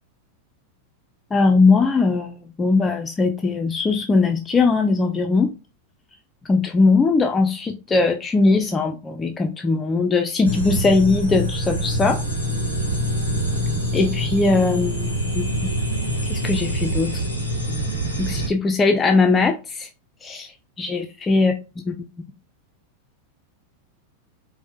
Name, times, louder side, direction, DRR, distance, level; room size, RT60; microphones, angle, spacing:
voice 1, 1.3-5.5 6.5-12.2 13.9-15.7 16.3-17.2 18.2-19.9 20.2-20.5 20.8-21.5 21.9-22.0, left 3 dB, 15° left, 0.3 m, -20 dB
sound 1, 10.4-18.5, right 1 dB, 85° right, 1.0 m, -25 dB
4.2 x 2.0 x 2.4 m
figure-of-eight pair, 90°, 0 cm